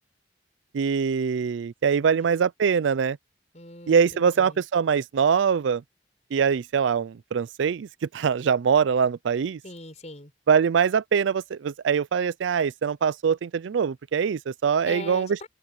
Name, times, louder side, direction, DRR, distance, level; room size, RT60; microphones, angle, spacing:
voice 1, 0.7-3.2 3.9-5.8 6.3-7.9 8.1-9.6 10.5-15.3, right 6 dB, 85° right, 0.4 m, -23 dB
voice 2, 3.5-4.6 9.6-10.3 14.9-15.5, left 2 dB, 40° left, 7.0 m, -41 dB
open air
head